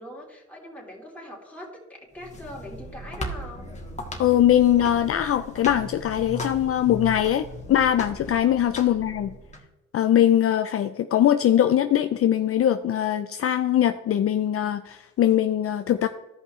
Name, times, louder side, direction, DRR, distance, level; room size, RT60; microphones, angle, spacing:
voice 1, 0.0-3.7 8.8-9.0, left 1 dB, 5° left, -3 dB, 3.3 m, -42 dB
sound 1, 2.1-9.6, left 1 dB, 25° left, 1.8 m, -37 dB
voice 2, 4.2-9.3 9.9-16.1, left 11 dB, 50° left, 9 dB, 0.5 m, -21 dB
14.5 x 5.4 x 3.2 m, 1.1 s
cardioid pair, 90°, 30 cm